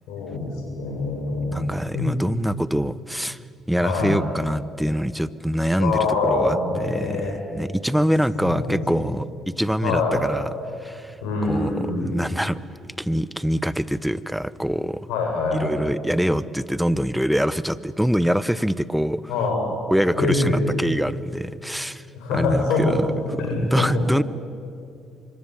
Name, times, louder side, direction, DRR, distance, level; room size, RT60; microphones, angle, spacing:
voice 1, 0.1-2.1 3.8-4.2 5.8-7.4 8.3-8.8 9.8-10.2 11.2-12.1 15.1-15.7 19.3-19.7 20.2-20.7 22.1-22.9 23.4-24.0, left 3 dB, 70° left, 0 dB, 7.6 m, -24 dB
voice 2, 1.5-3.4 3.7-9.3 9.6-10.5 10.8-11.2 11.4-12.6 13.0-15.1 15.6-19.2 19.9-22.1 22.3-23.1 23.3-24.2, equal, 5° right, 17 dB, 0.9 m, -24 dB
25.5 x 22.0 x 7.9 m, 2.4 s
hypercardioid pair, 50°, 0 cm